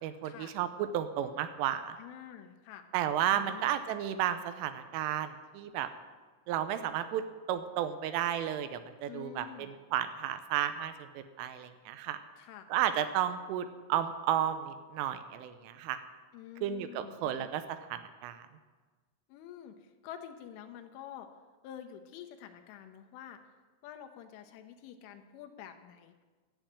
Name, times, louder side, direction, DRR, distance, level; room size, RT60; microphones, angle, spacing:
voice 1, 0.0-2.0 2.9-5.9 6.5-7.2 7.5-12.2 12.7-16.0 16.6-17.6 17.9-18.5, right 10 dB, 85° right, 10 dB, 3.2 m, -33 dB
voice 2, 2.0-2.9 3.3-3.7 9.0-9.7 12.4-12.7 16.3-17.5 19.3-21.3 21.6-23.4 23.8-26.2, left 10 dB, 80° left, 5 dB, 3.2 m, -48 dB
12.0 x 7.8 x 8.8 m, 1.4 s
omnidirectional pair, 5.8 m